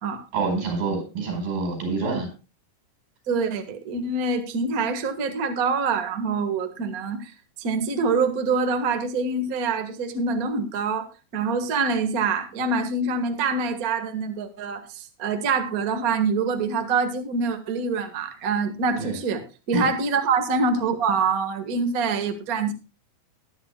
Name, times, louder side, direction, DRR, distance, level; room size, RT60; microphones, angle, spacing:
voice 1, 0.3-2.3 19.0-19.2 19.7-19.9, right 4 dB, 70° right, 5 dB, 6.6 m, -27 dB
voice 2, 3.3-7.3 7.6-22.7, right 4 dB, 90° right, 7 dB, 0.7 m, -25 dB
19.5 x 9.9 x 2.2 m, 0.31 s
omnidirectional pair, 4.3 m